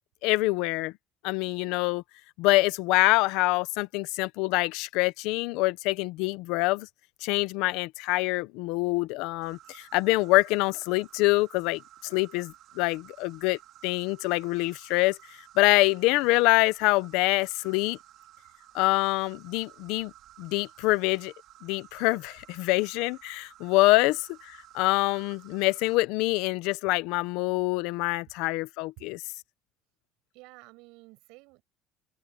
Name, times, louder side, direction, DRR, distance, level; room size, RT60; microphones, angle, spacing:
voice 1, 0.2-0.9 1.2-2.0 2.4-6.9 7.2-15.2 15.6-18.0 18.7-20.1 20.4-21.3 21.6-24.2 24.7-29.2, left 21 dB, 85° left, 0.7 m, -25 dB
Insect, 9.4-26.0, right 13 dB, 60° right, 3.9 m, -54 dB
voice 2, 30.3-31.6, right 24 dB, 85° right, 5.9 m, -52 dB
open air
cardioid pair, 150°, 0 cm